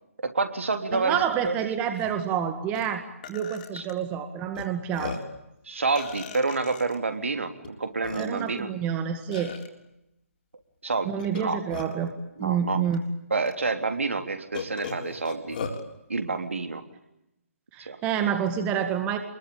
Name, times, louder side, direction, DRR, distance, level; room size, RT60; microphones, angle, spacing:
voice 1, 0.2-1.6 3.7-3.8 5.7-8.7 10.8-11.6 12.4-12.8 13.3-15.6 16.1-16.8 17.9-18.0, right 3 dB, 60° right, 6 dB, 3.5 m, -28 dB
voice 2, 0.9-3.0 3.3-5.2 8.2-9.5 11.0-12.1 12.4-13.0 17.7-19.2, right 8 dB, 15° right, 7 dB, 1.8 m, -28 dB
Burping eructation, 1.5-1.6 1.9-2.1 2.8-2.9 3.2-3.9 4.6-4.7 4.9-5.4 6.0-7.0 7.6-7.7 8.0-8.6 9.3-9.7 11.2-12.1 12.9-13.0 13.5-13.6 14.5-15.8, left 5 dB, 35° left, 3.9 m, -37 dB
28.5 x 22.5 x 8.8 m, 0.86 s
figure-of-eight pair, 140°, 8 cm